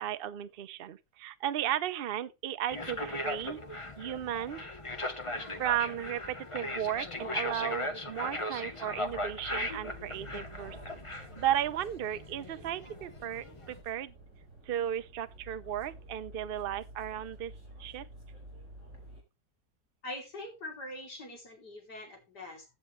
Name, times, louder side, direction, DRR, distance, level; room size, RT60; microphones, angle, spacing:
voice 1, 0.0-3.6 4.0-4.6 5.6-14.1 14.7-17.5 17.8-18.1, right 11 dB, 75° right, 0.5 m, -35 dB
sound 1, 2.7-13.8, left 1 dB, 25° left, 0.9 m, -38 dB
sound 2, 9.0-19.2, right 1 dB, 50° right, 4.8 m, -51 dB
voice 2, 20.0-22.7, left 1 dB, 65° left, 3.9 m, -43 dB
15.0 x 7.6 x 3.2 m
omnidirectional pair, 1.9 m